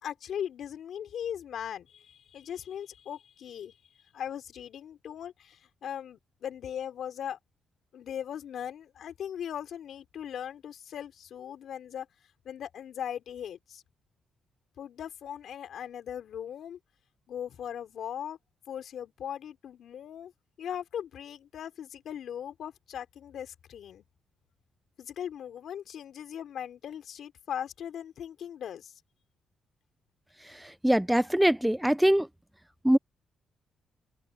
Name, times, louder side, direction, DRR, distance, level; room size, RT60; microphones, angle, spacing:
voice 1, 0.0-3.7 4.1-7.4 7.9-12.1 12.4-13.8 14.8-16.8 17.3-18.4 18.7-20.3 20.6-24.0 25.0-28.9, left 9 dB, 70° left, 3.9 m, -39 dB
voice 2, 30.8-32.3 32.8-33.0, right 1 dB, 5° right, 0.6 m, -22 dB
open air
cardioid pair, 80°, 0 cm